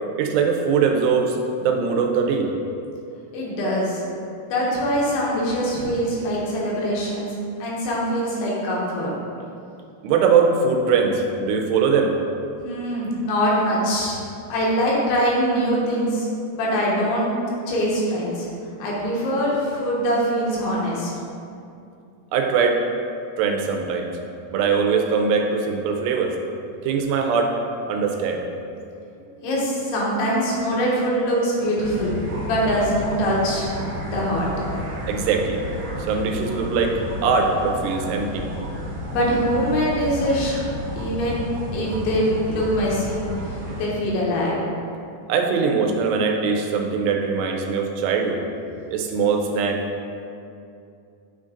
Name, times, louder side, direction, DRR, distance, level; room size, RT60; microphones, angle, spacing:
voice 1, 0.2-2.5 10.0-12.1 22.3-22.8 23.4-24.1 24.5-26.4 26.8-27.6 27.9-28.4 35.1-35.6 36.1-38.5 45.3-48.4 48.9-49.8, right 5 dB, 85° right, 3 dB, 2.7 m, -21 dB
voice 2, 3.3-4.0 4.5-7.3 7.6-9.1 12.6-14.2 14.5-16.3 16.5-17.3 17.7-18.5 18.8-21.1 29.4-32.1 32.4-33.7 34.1-34.5 39.1-40.6 41.0-41.4 41.7-44.6, equal, 80° left, -5 dB, 3.2 m, -23 dB
sound 1, 31.8-43.9, equal, 60° right, 2.0 m, -32 dB
9.0 x 3.8 x 3.8 m, 2.6 s
omnidirectional pair, 4.8 m